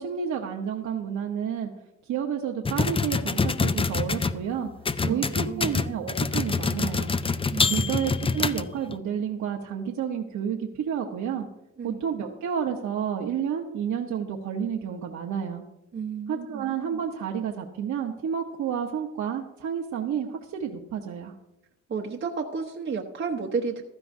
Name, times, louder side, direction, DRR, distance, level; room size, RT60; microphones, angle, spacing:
voice 1, 0.0-1.7 2.0-4.7 5.1-7.1 7.7-11.5 11.8-15.6 16.3-21.3, right 8 dB, 70° right, 1 dB, 1.1 m, -30 dB
sound 1, 2.7-4.4 4.9-9.0, left 4 dB, 20° left, 0.5 m, -26 dB
voice 2, 5.0-5.8 7.5-7.9 11.8-12.0 15.9-16.7 21.9-23.8, right 5 dB, 40° right, 1 dB, 1.0 m, -32 dB
15.5 x 12.0 x 2.7 m, 0.86 s
cardioid pair, 90°, 30 cm